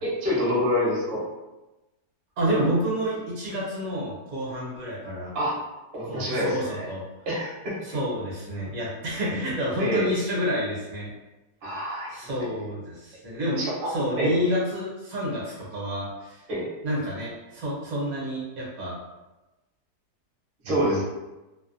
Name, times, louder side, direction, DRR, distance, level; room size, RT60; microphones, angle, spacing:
voice 1, 0.0-1.2 5.3-5.5 5.9-6.9 7.3-7.8 9.8-10.1 11.6-12.2 13.6-13.9 14.2-14.3 16.5-16.7 20.6-21.0, equal, 45° right, -6 dB, 0.8 m, -26 dB
voice 2, 2.4-5.3 6.0-7.0 7.8-11.1 12.1-13.6 13.9-16.4 16.8-18.9 20.6-21.0, equal, 65° right, -5 dB, 1.2 m, -29 dB
2.9 x 2.1 x 2.5 m, 1.1 s
omnidirectional pair, 1.8 m